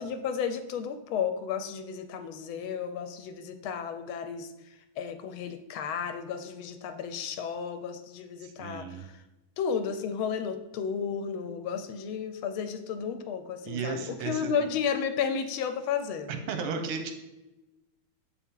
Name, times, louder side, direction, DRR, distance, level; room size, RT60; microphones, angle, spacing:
voice 1, 0.0-4.5 5.0-9.1 9.6-16.4, left 7 dB, 75° left, 8 dB, 1.3 m, -33 dB
voice 2, 8.4-9.1 13.7-14.7 16.3-17.1, right 5 dB, 90° right, 6 dB, 1.7 m, -34 dB
6.9 x 4.3 x 3.6 m, 1.0 s
omnidirectional pair, 2.4 m